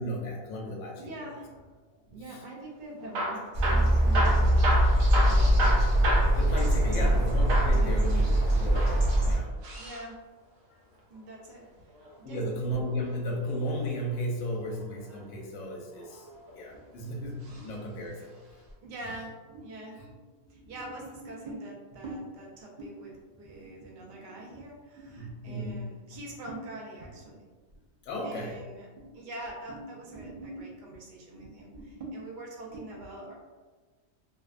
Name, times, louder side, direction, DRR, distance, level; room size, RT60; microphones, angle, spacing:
voice 1, 0.0-1.1 2.1-2.4 6.3-9.5 12.2-16.3 16.5-18.3 25.2-25.9 28.0-28.6, equal, 70° left, -1 dB, 0.9 m, -34 dB
voice 2, 1.0-1.7 2.1-5.7 6.9-7.2 7.7-8.3 9.8-10.1 11.1-11.7 12.2-12.4 16.7-17.0 17.5-17.7 18.2-18.3 18.8-27.4 28.2-33.3, right 1 dB, 60° right, -3 dB, 0.5 m, -43 dB
Hammer / Drill, 3.0-7.2 7.5-7.8 8.6-10.1 11.8-13.0 14.7-15.2 15.9-16.7 17.4-17.7 18.0-18.1 18.7-18.8, right 1 dB, 80° right, 1.1 m, -32 dB
sound 1, 3.5-9.4, right 1 dB, 40° right, 0.8 m, -22 dB
2.5 x 2.1 x 2.4 m, 1.3 s
omnidirectional pair, 1.4 m